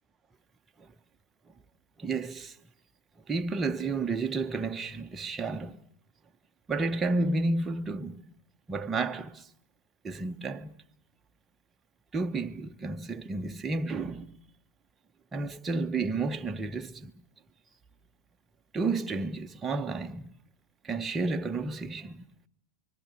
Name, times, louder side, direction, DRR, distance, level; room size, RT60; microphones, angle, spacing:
voice 1, 2.0-2.6 3.3-5.8 6.7-8.2 8.7-9.5 10.0-10.8 12.1-14.3 15.3-17.1 18.7-20.3 20.8-22.2, right 3 dB, 15° right, 1.2 m, -31 dB
28.0 x 25.0 x 6.2 m
figure-of-eight pair, 90°, 0 cm